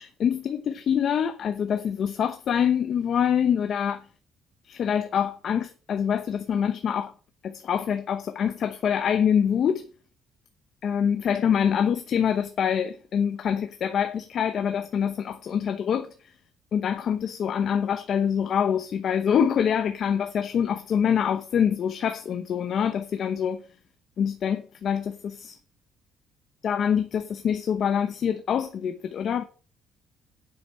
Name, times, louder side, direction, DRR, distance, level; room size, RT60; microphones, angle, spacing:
voice 1, 0.0-4.1 4.6-7.1 7.4-9.8 10.8-16.1 16.7-23.6 24.2-25.6 26.6-29.4, left 8 dB, 45° left, 0.9 m, -25 dB
8.5 x 6.2 x 7.5 m
cardioid pair, 155°, 0 cm